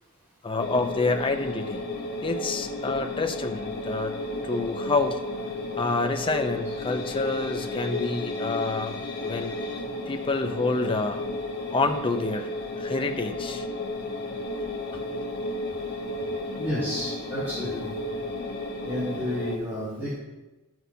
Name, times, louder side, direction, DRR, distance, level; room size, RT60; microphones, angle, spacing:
voice 1, 0.4-1.8 2.2-4.2 4.4-5.2 5.8-8.9 9.2-9.5 10.1-11.2 11.7-12.5 12.8-13.7, left 3 dB, 25° left, 6 dB, 0.6 m, -28 dB
sound 1, 0.6-19.6, left 2 dB, 50° left, 1.2 m, -33 dB
voice 2, 16.5-18.0 18.8-20.1, left 1 dB, 10° right, -13 dB, 2.8 m, -31 dB
12.5 x 6.1 x 2.8 m, 1.1 s
head